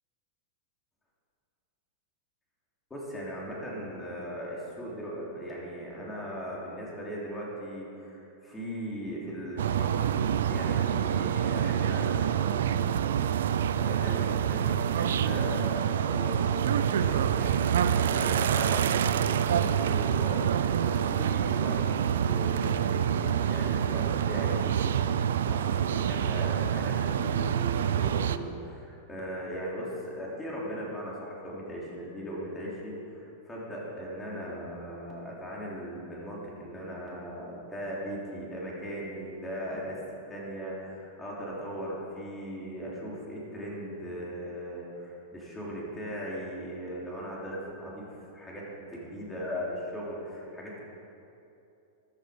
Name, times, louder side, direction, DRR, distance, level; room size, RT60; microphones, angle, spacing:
voice 1, 2.9-13.0 13.8-21.8 22.2-40.0 40.3-48.1 48.3-50.8, equal, 10° left, -5 dB, 3.1 m, -38 dB
sound 1, 9.6-28.4, right 9 dB, 90° right, 0.5 m, -27 dB
14.5 x 11.5 x 5.1 m, 2.8 s
supercardioid pair, 155°, 0 cm